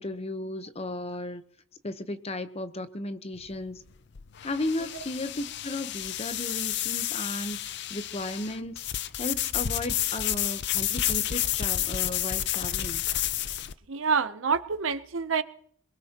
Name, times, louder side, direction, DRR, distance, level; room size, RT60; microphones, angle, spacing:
voice 1, 0.0-1.4 1.8-3.8 4.4-8.9 9.2-13.0, left 2 dB, 30° left, 10 dB, 0.9 m, -35 dB
sound 1, 3.4-13.7, left 12 dB, 60° left, 0.6 m, -30 dB
voice 2, 13.9-15.4, right 5 dB, 80° right, 13 dB, 0.8 m, -27 dB
22.5 x 20.5 x 3.0 m, 0.62 s
head